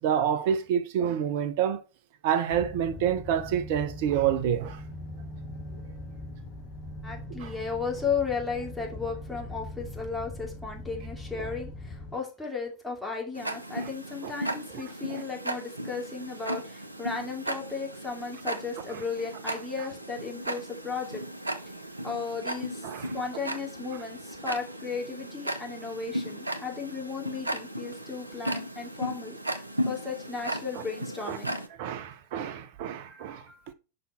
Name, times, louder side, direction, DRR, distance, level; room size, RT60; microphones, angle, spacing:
voice 1, 0.0-1.8 2.2-4.8 7.4-7.5 13.8-13.9 14.2-14.3 15.1-15.2 22.8-23.1 31.3-31.4 31.8-33.4, right 9 dB, 50° right, 0.9 m, -28 dB
sound 1, 2.5-12.2, left 1 dB, 35° left, 2.2 m, -41 dB
voice 2, 7.0-21.2 22.0-29.4 29.9-31.5 33.1-33.7, left 5 dB, 5° left, 2.7 m, -35 dB
Tick-tock, 13.3-31.7, right 1 dB, 85° right, 0.8 m, -36 dB
6.6 x 5.5 x 4.4 m
figure-of-eight pair, 90°, 0 cm